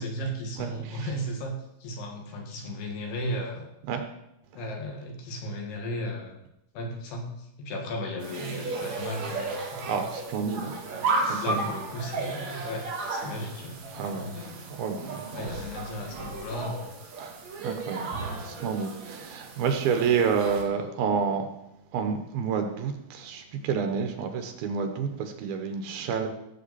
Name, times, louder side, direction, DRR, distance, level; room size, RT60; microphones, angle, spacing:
voice 1, 0.0-3.7 4.6-6.4 6.7-10.1 11.4-14.8 15.3-16.9, equal, 85° left, 1 dB, 4.0 m, -35 dB
voice 2, 0.6-1.1 3.9-4.0 9.9-10.8 11.3-11.6 13.9-15.4 17.2-18.1 18.4-21.5 21.9-26.3, right 6 dB, 75° right, 6 dB, 3.0 m, -29 dB
sound 1, 8.2-20.6, right 3 dB, 55° right, 2.8 m, -34 dB
15.5 x 7.8 x 4.3 m, 0.82 s
omnidirectional pair, 4.5 m